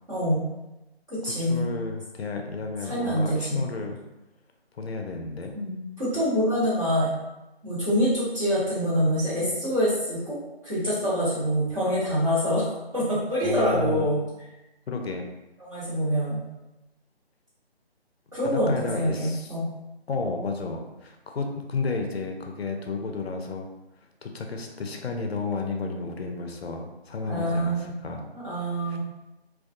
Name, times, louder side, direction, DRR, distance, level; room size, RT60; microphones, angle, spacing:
voice 1, 0.1-0.4 1.1-1.7 2.8-3.6 5.5-7.1 7.6-10.4 10.6-14.2 15.6-16.4 18.3-19.7 27.2-27.9 28.3-29.0, equal, 30° right, -12 dB, 1.2 m, -25 dB
voice 2, 1.3-4.0 4.8-5.5 13.4-14.1 14.9-15.3 18.4-19.5 20.1-23.7 24.2-28.3 28.9-29.0, left 4 dB, 70° left, 3 dB, 0.5 m, -32 dB
2.3 x 2.2 x 2.4 m, 0.97 s
figure-of-eight pair, 165°, 32 cm